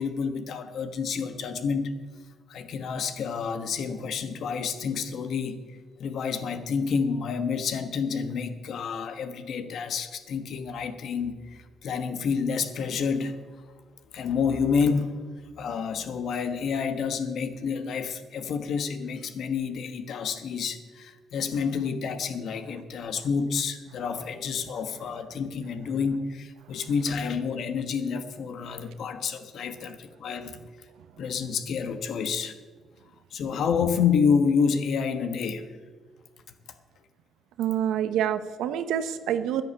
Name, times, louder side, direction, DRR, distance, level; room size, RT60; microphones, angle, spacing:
voice 1, 0.0-2.0 2.5-5.6 6.0-13.4 14.1-15.3 15.6-30.6 31.2-32.6 33.3-35.7, left 6 dB, 70° left, 9 dB, 1.2 m, -29 dB
voice 2, 37.6-39.6, right 10 dB, 90° right, 11 dB, 0.9 m, -27 dB
10.5 x 10.5 x 8.3 m, 1.4 s
cardioid pair, 90°, 0 cm